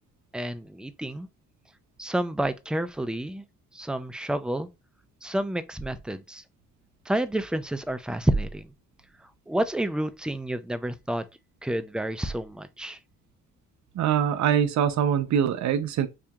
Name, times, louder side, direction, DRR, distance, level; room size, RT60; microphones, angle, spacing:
voice 1, 0.3-1.3 2.0-3.4 3.7-4.7 5.2-6.4 7.1-8.7 9.5-11.3 11.6-13.0, right 1 dB, 5° right, 0.4 m, -29 dB
voice 2, 13.9-16.1, right 9 dB, 65° right, 0.6 m, -23 dB
4.9 x 2.7 x 2.3 m
cardioid pair, 90°, 30 cm